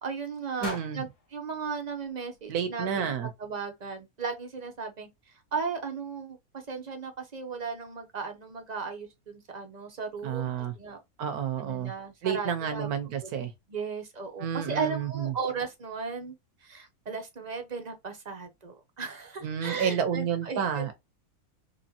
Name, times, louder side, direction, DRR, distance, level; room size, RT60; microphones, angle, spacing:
voice 1, 0.0-3.1 3.4-5.1 5.5-11.0 11.6-12.9 13.2-13.3 13.7-16.3 16.6-20.9, right 5 dB, 40° right, 0.6 m, -36 dB
sound 1, 0.6-2.8, left 4 dB, 85° left, 1.6 m, -45 dB
voice 2, 0.6-1.1 2.5-3.3 10.2-10.7 11.2-11.9 12.2-13.5 14.4-15.3 19.4-20.9, right 8 dB, 80° right, 1.3 m, -30 dB
4.2 x 3.1 x 2.7 m
omnidirectional pair, 1.6 m